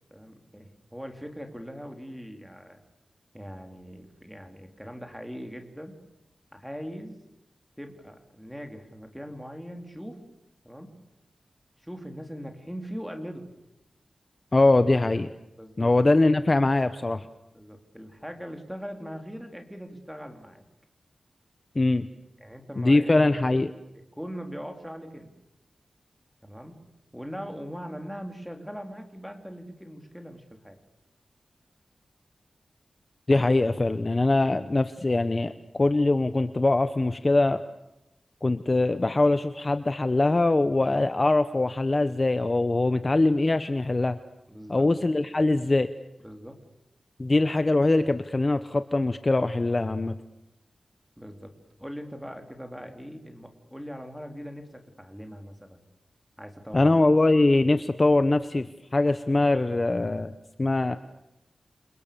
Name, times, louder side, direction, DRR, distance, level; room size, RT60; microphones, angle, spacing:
voice 1, 0.1-2.8 3.3-5.9 6.5-7.2 7.8-10.2 10.6-11.0 11.8-13.5 15.6-15.9 17.5-20.6 22.4-23.1 24.2-25.3 26.4-26.7 27.1-30.8 44.5-44.9 46.2-46.6 51.2-51.5 51.8-55.8 56.4-56.9, equal, ahead, 4 dB, 3.8 m, -40 dB
voice 2, 14.5-15.3 15.8-17.3 21.7-22.1 22.8-23.7 33.3-37.6 38.4-44.2 44.7-45.9 47.2-50.2 56.7-58.7 58.9-60.3 60.6-61.0, left 2 dB, 30° left, 11 dB, 1.0 m, -22 dB
30.0 x 27.0 x 7.0 m, 0.91 s
wide cardioid pair, 120°, 0 cm